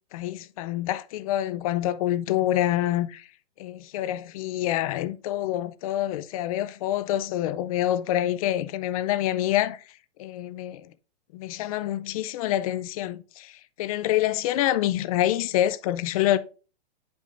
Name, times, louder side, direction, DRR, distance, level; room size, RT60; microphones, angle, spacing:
voice 1, 0.0-3.3 3.6-9.8 10.2-10.9 11.3-13.5 13.8-16.4, left 13 dB, 35° left, 0.4 m, -26 dB
8.6 x 5.3 x 2.5 m
hypercardioid pair, 140°, 31 cm